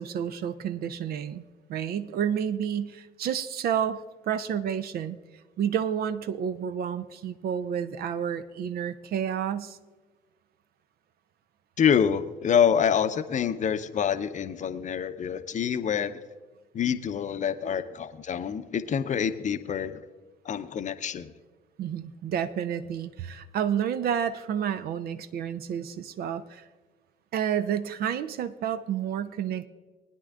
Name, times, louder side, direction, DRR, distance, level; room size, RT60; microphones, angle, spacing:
voice 1, 0.0-1.4 1.7-5.2 5.6-9.8 21.8-26.6 27.3-29.7, right 8 dB, 50° right, 12 dB, 0.6 m, -30 dB
voice 2, 11.8-16.2 16.7-20.0 20.4-21.3, left 8 dB, 35° left, 11 dB, 0.7 m, -26 dB
21.0 x 9.9 x 2.5 m, 1.3 s
figure-of-eight pair, 50°, 20 cm